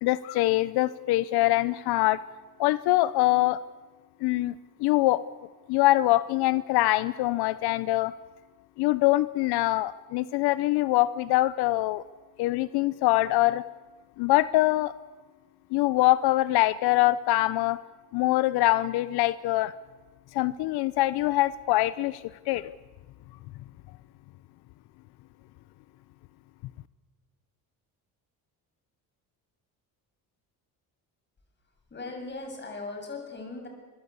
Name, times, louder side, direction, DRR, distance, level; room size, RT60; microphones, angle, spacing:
voice 1, 0.0-2.2 2.6-3.6 4.2-4.5 4.8-5.2 5.7-8.1 8.8-12.0 12.4-13.6 14.2-14.9 15.7-17.8 18.1-19.7 20.3-22.7, left 17 dB, 90° left, 16 dB, 0.8 m, -24 dB
voice 2, 31.7-33.7, left 3 dB, 30° left, 3 dB, 7.5 m, -39 dB
24.5 x 22.5 x 8.3 m, 1.3 s
cardioid pair, 130°, 37 cm